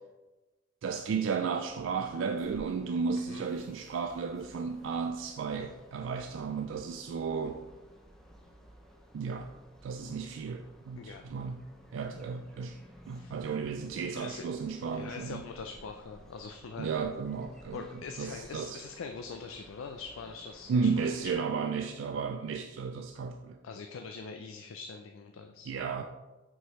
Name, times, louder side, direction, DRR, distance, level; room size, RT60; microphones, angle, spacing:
voice 1, 0.8-7.6 9.1-9.5 9.8-11.6 11.9-12.8 13.1-15.4 16.8-17.8 18.2-18.8 20.7-23.6 25.7-26.0, right 5 dB, 70° right, 0.3 m, -33 dB
sound 1, 1.7-21.3, equal, ahead, 0.6 m, -56 dB
voice 2, 14.1-14.6 14.9-16.9 17.7-21.6 23.6-25.7, left 5 dB, 90° left, 0.4 m, -43 dB
6.2 x 4.8 x 3.1 m
head